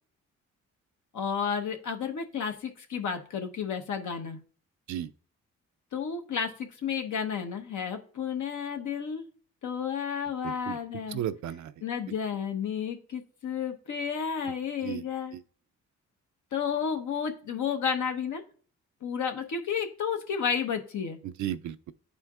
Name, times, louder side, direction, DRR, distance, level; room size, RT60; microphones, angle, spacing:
voice 1, 1.1-4.4 5.9-6.5 6.8-9.3 9.6-11.2 11.8-15.3 16.5-18.4 19.0-21.2, left 7 dB, 65° left, 1.0 m, -32 dB
voice 2, 10.4-10.8 11.1-11.7 12.1-12.2 14.4-14.5 14.8-15.1 15.3-15.4 21.2-21.9, right 11 dB, 65° right, 0.4 m, -34 dB
11.0 x 4.4 x 2.4 m
cardioid pair, 70°, 32 cm